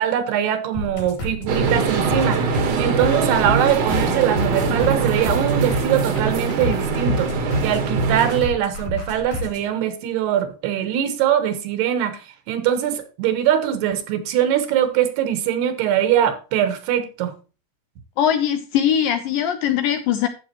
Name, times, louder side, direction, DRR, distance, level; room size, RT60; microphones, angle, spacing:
voice 1, 0.0-12.2 12.5-17.3, right 10 dB, 80° right, 3.2 m, -22 dB
sound 1, 0.7-9.7, left 3 dB, 60° left, 4.8 m, -30 dB
sound 2, 1.5-8.4, right 5 dB, 55° right, 1.8 m, -22 dB
voice 2, 18.2-20.3, left 9 dB, 75° left, 2.1 m, -21 dB
12.0 x 8.4 x 3.0 m
omnidirectional pair, 4.7 m